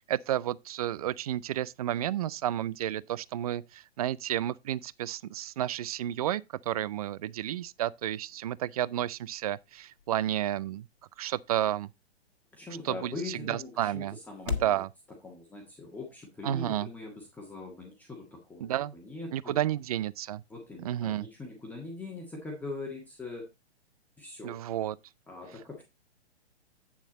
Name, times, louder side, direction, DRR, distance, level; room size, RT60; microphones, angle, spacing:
voice 1, 0.1-10.9 11.2-11.9 12.8-14.2 14.5-14.9 16.4-16.9 18.6-18.9 19.3-20.4 20.8-21.3 24.4-25.0, right 12 dB, 35° right, 0.4 m, -31 dB
sound 1, 8.6-14.8, left 7 dB, 65° left, 1.5 m, -43 dB
voice 2, 12.5-14.8 15.2-19.6 20.5-23.5 24.2-24.6 25.3-25.8, left 3 dB, 5° left, 1.7 m, -42 dB
8.7 x 7.2 x 4.1 m
figure-of-eight pair, 120°, 33 cm